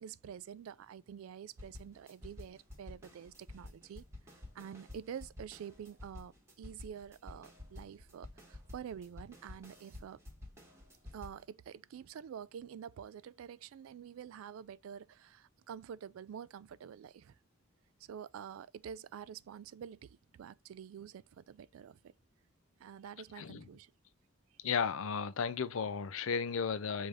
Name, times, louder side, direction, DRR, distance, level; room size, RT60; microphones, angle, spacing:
voice 1, 0.0-4.0 4.5-10.2 11.1-17.4 18.0-22.0 22.8-23.9, right 8 dB, 85° right, 0.3 m, -48 dB
sound 1, 1.6-11.4, left 2 dB, 15° right, 1.2 m, -51 dB
voice 2, 24.6-27.1, left 6 dB, 75° left, 0.5 m, -34 dB
4.9 x 2.7 x 3.5 m
head